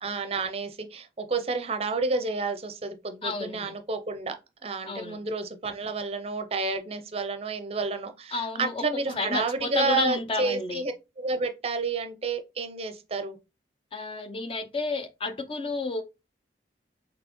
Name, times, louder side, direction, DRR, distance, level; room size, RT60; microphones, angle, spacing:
voice 1, 0.0-4.4 4.6-13.4, right 3 dB, 35° right, 0.5 m, -30 dB
voice 2, 3.2-3.7 4.9-5.2 8.3-8.8 9.1-10.9 13.9-16.0, left 3 dB, 30° left, 0.4 m, -31 dB
4.1 x 3.2 x 3.0 m
head